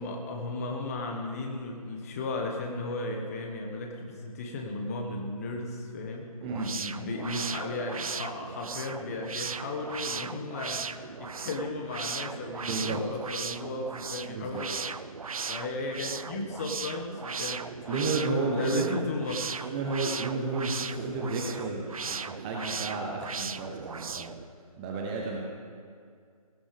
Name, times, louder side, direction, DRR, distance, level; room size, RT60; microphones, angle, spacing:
voice 1, 0.0-6.3 7.0-14.7 15.5-19.7, left 2 dB, 25° left, 2 dB, 1.5 m, -35 dB
voice 2, 6.4-7.1 12.7-13.0 14.2-14.6 17.9-19.0 19.6-24.4 24.8-25.4, right 3 dB, 15° right, -1 dB, 0.9 m, -32 dB
sound 1, 6.4-24.5, right 5 dB, 65° right, 0.5 m, -37 dB
18.0 x 16.5 x 3.5 m, 2.2 s
figure-of-eight pair, 150°, 19 cm